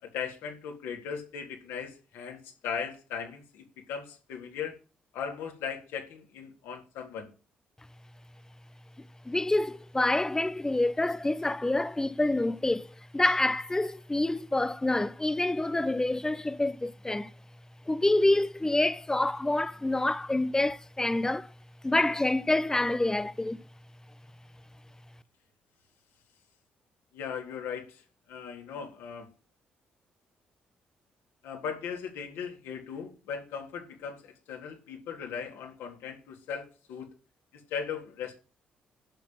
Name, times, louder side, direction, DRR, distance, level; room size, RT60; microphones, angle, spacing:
voice 1, 0.0-4.8 5.1-7.3 27.1-28.0 28.3-29.3 31.4-37.1 37.5-38.4, left 7 dB, 65° left, 3.6 m, -38 dB
voice 2, 9.2-12.9 13.1-17.3 17.9-21.5 21.8-23.6, left 2 dB, 15° left, 1.1 m, -27 dB
11.5 x 7.4 x 9.1 m
figure-of-eight pair, 40°, 4 cm